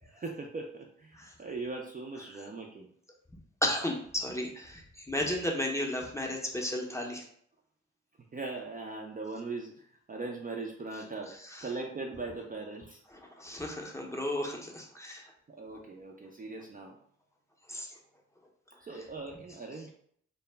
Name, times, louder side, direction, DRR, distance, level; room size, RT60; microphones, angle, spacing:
voice 1, 0.0-2.9 8.3-11.3 11.6-13.0 15.5-17.0 18.8-19.9, right 3 dB, 30° right, 0 dB, 0.4 m, -40 dB
voice 2, 3.6-7.3 11.3-11.7 13.1-15.3 17.7-18.0 18.9-19.0, left 1 dB, 10° left, 0 dB, 0.6 m, -34 dB
2.0 x 2.0 x 3.3 m, 0.65 s
supercardioid pair, 50°, 29 cm